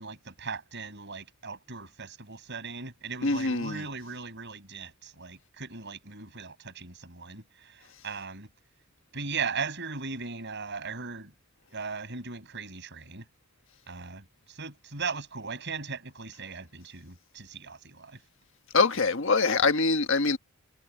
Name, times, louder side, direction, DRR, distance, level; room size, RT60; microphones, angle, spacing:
voice 1, 0.0-8.5 9.1-11.3 11.7-13.3 13.9-18.2, right 5 dB, 50° right, 6.4 m, -38 dB
voice 2, 3.2-3.8 18.7-20.4, left 4 dB, 60° left, 1.5 m, -24 dB
head